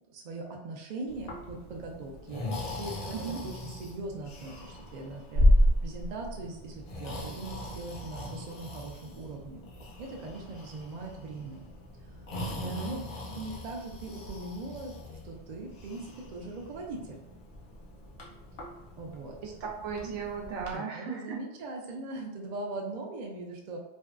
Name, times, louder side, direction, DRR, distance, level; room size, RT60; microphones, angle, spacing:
voice 1, 0.1-9.6 10.0-11.7 12.1-13.0 13.3-15.0 15.2-17.2 19.0-19.4 20.7-23.8, right 2 dB, 60° right, 0 dB, 0.4 m, -40 dB
Breathing, 1.1-20.8, equal, 60° left, 0.7 m, -34 dB
voice 2, 3.1-3.4 12.6-13.0 19.4-21.4, right 5 dB, 90° right, 1 dB, 0.9 m, -36 dB
2.6 x 2.2 x 2.3 m, 0.91 s
omnidirectional pair, 1.2 m